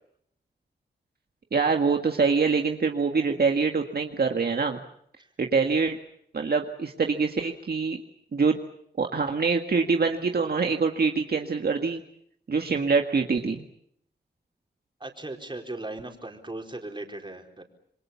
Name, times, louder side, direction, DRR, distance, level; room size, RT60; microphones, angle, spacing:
voice 1, 1.5-4.8 5.4-6.0 6.3-8.0 8.3-8.6 9.0-12.0 12.5-13.7, right 4 dB, 60° right, 4 dB, 1.9 m, -24 dB
voice 2, 15.0-17.6, right 2 dB, 25° right, 3 dB, 4.4 m, -38 dB
28.0 x 23.0 x 7.2 m, 0.69 s
cardioid pair, 70°, 18 cm